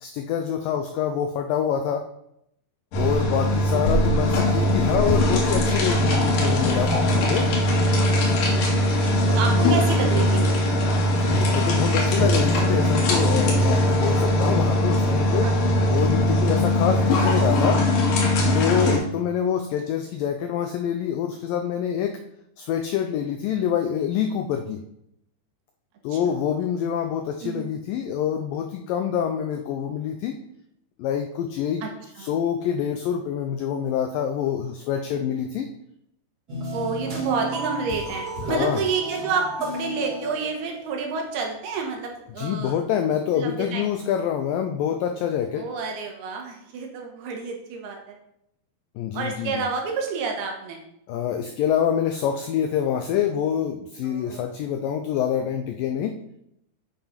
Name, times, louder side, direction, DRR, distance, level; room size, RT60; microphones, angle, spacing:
voice 1, 0.0-2.0 3.0-7.5 11.3-15.5 15.9-17.8 18.5-22.2 22.6-24.8 26.0-30.4 31.0-31.8 32.2-35.7 38.4-38.8 42.4-45.7 49.0-49.6 51.1-56.2, left 9 dB, 85° left, 6 dB, 2.0 m, -26 dB
sound 1, 2.9-19.0, left 1 dB, 65° left, 3.2 m, -20 dB
voice 2, 9.1-10.6 13.7-14.2 15.4-15.6 26.1-26.3 27.4-27.7 31.8-31.9 32.2-32.3 36.7-42.8 43.3-43.9 45.5-48.2 49.1-50.8 54.0-54.5, right 5 dB, 75° right, 1 dB, 3.2 m, -29 dB
sound 2, 36.5-41.1, equal, 30° right, 1.9 m, -33 dB
8.9 x 5.6 x 5.1 m, 0.77 s
omnidirectional pair, 4.7 m